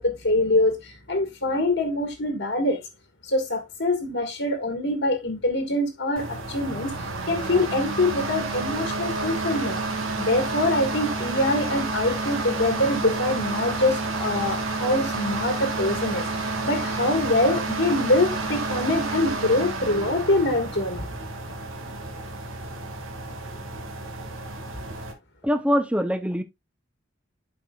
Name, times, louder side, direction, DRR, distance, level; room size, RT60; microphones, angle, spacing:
voice 1, 0.0-2.8 3.2-9.8 10.2-21.1, left 2 dB, 60° left, 1.5 m, -24 dB
sound 1, 6.2-25.1, right 3 dB, 75° right, 1.8 m, -30 dB
voice 2, 25.4-26.4, equal, 5° right, 0.7 m, -23 dB
12.0 x 4.8 x 2.3 m
head